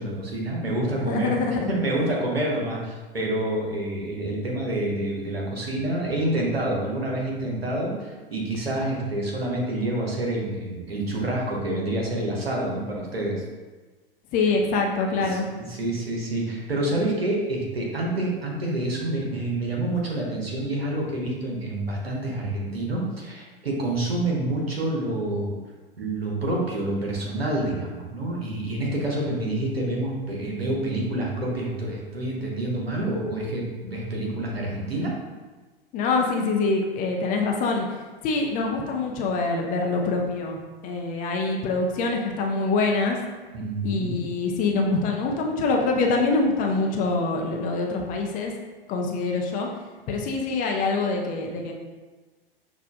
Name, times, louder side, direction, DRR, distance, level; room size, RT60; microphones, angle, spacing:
voice 1, 0.0-13.4 15.1-25.5 26.0-35.1 43.5-44.2, right 1 dB, 85° right, -2 dB, 1.1 m, -28 dB
voice 2, 1.1-1.7 14.3-15.5 35.9-37.9 38.2-40.6 40.8-43.2 43.8-48.5 48.9-49.7 50.1-51.7, left 3 dB, 30° left, 1 dB, 0.5 m, -25 dB
6.0 x 2.4 x 2.4 m, 1.3 s
figure-of-eight pair, 95°, 30 cm